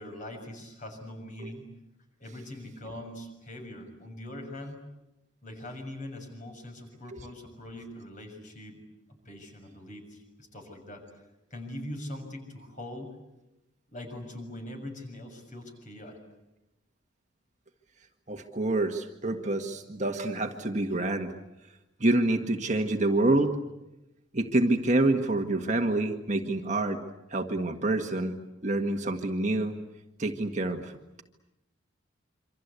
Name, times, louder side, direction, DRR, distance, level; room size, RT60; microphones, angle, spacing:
voice 1, 0.0-1.7 2.2-4.8 5.4-8.8 9.2-13.1 13.9-16.2, left 1 dB, 40° left, 4 dB, 6.6 m, -42 dB
voice 2, 18.3-21.3 22.0-23.6 24.3-27.0 27.3-28.4 28.6-29.7 30.2-30.9, right 2 dB, 35° right, 4 dB, 1.7 m, -27 dB
27.5 x 25.5 x 8.3 m, 0.95 s
head